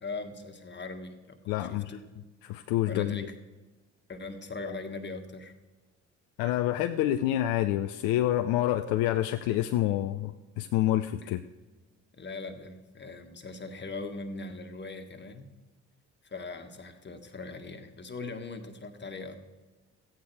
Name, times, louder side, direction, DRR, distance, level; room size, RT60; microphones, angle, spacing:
voice 1, 0.0-2.0 2.9-3.3 4.1-5.5 11.2-11.3 12.1-15.5 16.2-19.4, left 3 dB, 30° left, 6 dB, 1.6 m, -40 dB
voice 2, 1.5-2.0 2.4-3.3 6.4-11.4, left 13 dB, 65° left, 8 dB, 0.6 m, -27 dB
14.5 x 8.7 x 4.7 m, 1.2 s
hypercardioid pair, 45°, 37 cm